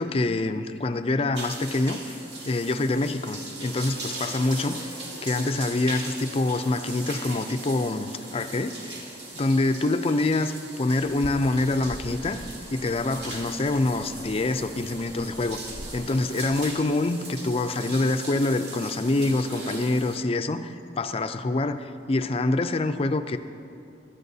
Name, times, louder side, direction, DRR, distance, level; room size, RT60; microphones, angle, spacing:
voice 1, 0.0-2.2 2.5-5.0 5.2-9.0 9.3-12.4 12.7-23.4, left 2 dB, 35° left, 9 dB, 0.4 m, -26 dB
sound 1, 1.3-20.2, right 2 dB, 70° right, 2.2 m, -39 dB
Bird, 11.0-16.9, equal, 25° right, 1.1 m, -43 dB
17.0 x 12.5 x 2.8 m, 2.5 s
head